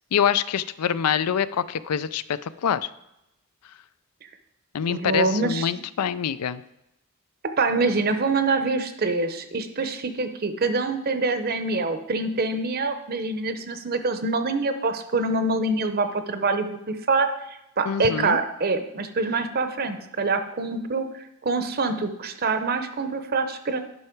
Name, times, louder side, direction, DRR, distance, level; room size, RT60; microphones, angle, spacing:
voice 1, 0.1-2.9 4.7-6.6 17.9-18.4, left 8 dB, 90° left, 15 dB, 0.4 m, -25 dB
voice 2, 4.9-5.7 7.6-17.3 17.8-21.1 21.4-23.8, right 3 dB, 45° right, 9 dB, 0.7 m, -25 dB
11.0 x 5.7 x 4.5 m, 0.85 s
head